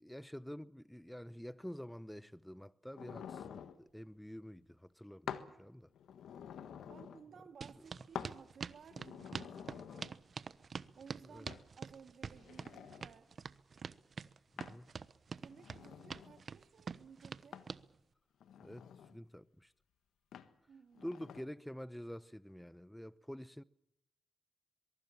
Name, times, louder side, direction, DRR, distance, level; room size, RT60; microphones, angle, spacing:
voice 1, 0.0-5.9 11.3-11.5 14.5-14.9 18.6-19.7 21.0-23.6, equal, 5° left, 0.8 m, -48 dB
sound 1, 3.0-3.8 5.3-5.5 5.9-7.2 8.1-8.4 8.9-10.1 11.5-11.6 12.2-13.1 14.6-14.8 15.4-16.4 17.5-17.7 18.4-19.2 20.3-20.5 20.9-21.4, left 8 dB, 85° left, 1.4 m, -48 dB
voice 2, 6.8-10.2 11.0-13.3 15.3-17.6 20.7-21.1, right 6 dB, 70° right, 2.1 m, -58 dB
sound 2, 7.6-17.8, right 5 dB, 55° right, 1.1 m, -45 dB
23.0 x 22.5 x 7.3 m
cardioid pair, 60°, 0 cm